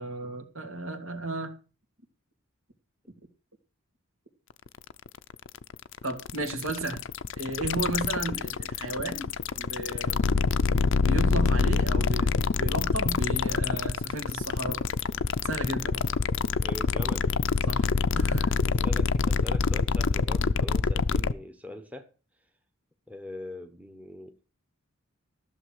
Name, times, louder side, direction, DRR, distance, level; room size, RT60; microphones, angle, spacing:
voice 1, 0.0-1.6 6.0-7.0 7.4-10.2 10.9-14.8 15.4-16.0 17.7-17.9 18.1-18.5, right 2 dB, 70° right, 2.7 m, -34 dB
sound 1, 4.7-21.3, left 4 dB, 60° left, 0.6 m, -26 dB
voice 2, 16.5-17.3 18.7-22.1 23.1-24.4, left 1 dB, 5° right, 1.1 m, -42 dB
14.0 x 7.0 x 6.5 m
head